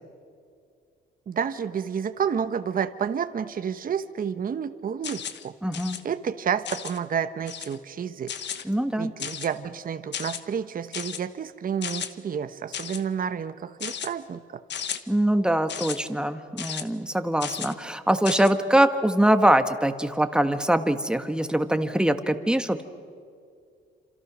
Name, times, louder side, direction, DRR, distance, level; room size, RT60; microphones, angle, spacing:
voice 1, 1.3-5.5 6.0-8.3 9.0-14.6, right 7 dB, 45° right, 10 dB, 1.0 m, -30 dB
sound 1, 5.0-5.4 5.7-6.0 6.6-7.0 7.5-7.8 8.3-8.6 9.2-9.6 10.1-10.4 10.9-11.2 11.8-12.1 12.7-13.0 13.8-14.1 14.7-15.0 15.7-16.0 16.6-16.8 17.4-17.7 18.2-18.5, left 8 dB, 60° left, 1.4 m, -34 dB
voice 2, 5.6-6.0 8.6-9.1 15.1-22.8, right 1 dB, 5° right, 8 dB, 1.6 m, -23 dB
28.5 x 26.5 x 6.3 m, 2.3 s
cardioid pair, 90°, 20 cm